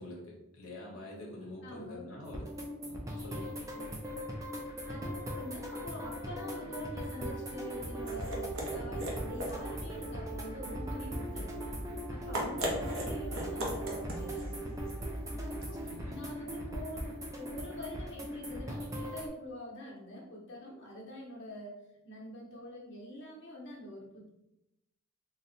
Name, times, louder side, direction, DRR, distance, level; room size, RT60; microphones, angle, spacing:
voice 1, 0.0-2.5 2.8-3.5 15.8-16.2, left 1 dB, 80° left, -2 dB, 0.8 m, -46 dB
voice 2, 1.6-2.2 3.8-4.1 4.9-11.6 12.1-14.7 15.4-21.8 22.0-24.3, left 1 dB, 55° left, -4 dB, 1.0 m, -45 dB
sound 1, 2.2-19.3, right 1 dB, 15° right, 0.4 m, -40 dB
sound 2, 7.7-15.9, equal, 65° right, 0.7 m, -39 dB
3.8 x 2.1 x 2.7 m, 0.90 s
head